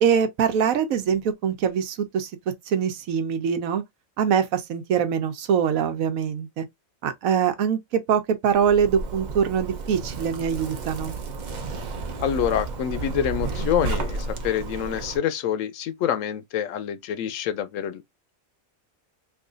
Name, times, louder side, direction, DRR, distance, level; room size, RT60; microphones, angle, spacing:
voice 1, 0.0-2.3 2.7-3.8 4.2-6.6 7.0-11.1, right 7 dB, 80° right, 1.1 m, -23 dB
Zipper (clothing), 8.5-15.2, right 3 dB, 45° right, 0.6 m, -32 dB
voice 2, 12.2-18.0, left 9 dB, 75° left, 0.9 m, -26 dB
3.1 x 2.4 x 3.8 m
omnidirectional pair, 1.4 m